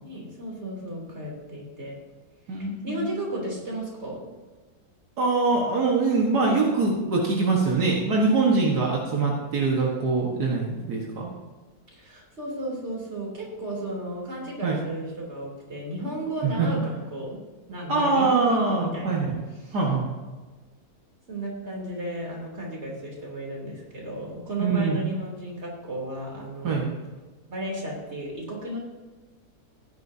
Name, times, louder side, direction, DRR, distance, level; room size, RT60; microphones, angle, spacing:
voice 1, 0.0-2.0 2.6-4.2 11.9-17.4 17.7-19.2 19.7-19.8 21.3-26.8 27.5-28.8, right 1 dB, 40° right, -2 dB, 3.5 m, -34 dB
voice 2, 2.5-3.0 5.2-11.3 14.6-14.8 16.4-16.7 17.9-19.3 19.7-20.1 24.6-25.1 26.6-26.9, right 3 dB, 75° right, -2 dB, 2.1 m, -23 dB
15.5 x 10.5 x 2.8 m, 1.3 s
omnidirectional pair, 1.7 m